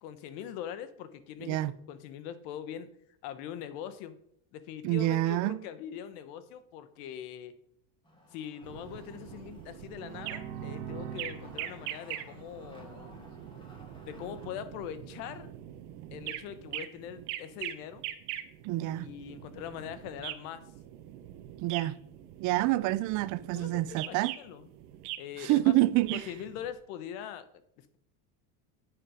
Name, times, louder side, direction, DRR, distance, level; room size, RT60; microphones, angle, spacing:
voice 1, 0.0-2.9 3.2-4.2 4.5-7.5 8.3-13.2 14.1-15.5 16.1-18.0 18.9-20.6 23.5-24.7 25.2-25.7 26.1-27.5 27.8-28.0, left 9 dB, 70° left, 1.2 m, -42 dB
voice 2, 4.8-5.6 18.6-19.1 21.6-22.0 22.4-24.3 25.4-26.3, right 16 dB, 45° right, 0.5 m, -27 dB
Wood, 8.0-14.5, left 1 dB, 10° left, 2.2 m, -56 dB
sound 1, 8.6-26.7, right 13 dB, 80° right, 1.1 m, -43 dB
sound 2, 9.8-13.5, right 8 dB, 60° right, 1.3 m, -44 dB
9.7 x 8.0 x 5.0 m
supercardioid pair, 140°, 46 cm